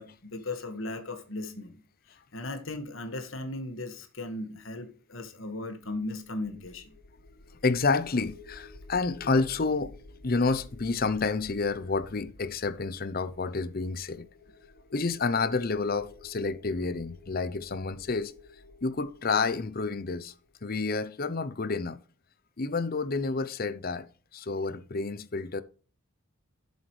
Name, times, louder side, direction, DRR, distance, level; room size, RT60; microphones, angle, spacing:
voice 1, 0.0-1.8 2.1-6.8, left 2 dB, 60° left, 1.7 m, -37 dB
sound 1, 5.9-21.0, left 3 dB, 90° left, 1.2 m, -52 dB
voice 2, 7.6-10.0 10.2-14.3 14.9-18.3 18.8-20.3 20.6-22.0 22.6-25.6, left 4 dB, 40° left, 0.6 m, -29 dB
10.5 x 8.1 x 3.2 m
head